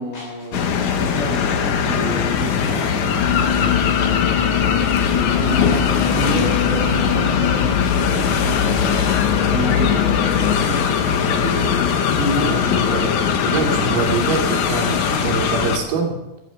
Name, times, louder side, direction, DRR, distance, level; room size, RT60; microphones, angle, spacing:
voice 1, 0.0-4.6 5.0-9.0 9.3-13.2 13.7-13.9, equal, 30° left, -9 dB, 8.5 m, -29 dB
sound 1, 0.5-15.8, left 6 dB, 65° left, 1.9 m, -20 dB
sound 2, 3.2-10.5, left 11 dB, 85° left, 3.3 m, -23 dB
voice 2, 13.4-16.2, right 5 dB, 80° right, 1 dB, 4.9 m, -24 dB
15.5 x 10.5 x 7.0 m, 0.94 s
omnidirectional pair, 5.0 m